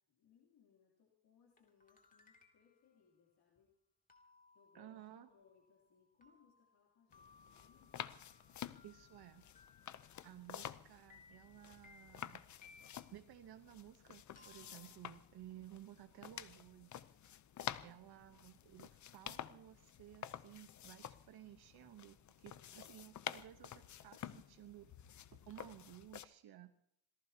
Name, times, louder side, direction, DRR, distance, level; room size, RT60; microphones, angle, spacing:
voice 1, 0.1-3.7 4.5-8.1 17.5-18.0 22.4-23.1, left 7 dB, 65° left, -2 dB, 3.2 m, -71 dB
sound 1, 1.6-2.9 4.1-10.8 11.1-13.3 14.4-15.6, left 4 dB, 20° left, 2.6 m, -66 dB
voice 2, 4.7-5.3 8.8-9.5 10.2-12.4 13.1-17.1 17.8-24.9 25.3-26.7, right 12 dB, 70° right, 7 dB, 1.1 m, -56 dB
sound 2, 7.1-26.3, left 10 dB, 45° left, 0.7 m, -50 dB
26.5 x 17.5 x 2.9 m, 0.68 s
cardioid pair, 140°, 40 cm